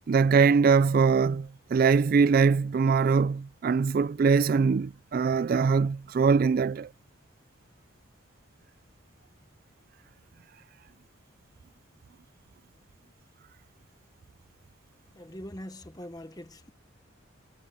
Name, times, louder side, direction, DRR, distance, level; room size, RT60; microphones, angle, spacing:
voice 1, 0.1-6.9, right 5 dB, 45° right, 0.3 m, -22 dB
voice 2, 15.1-16.7, left 1 dB, 20° left, 1.1 m, -42 dB
head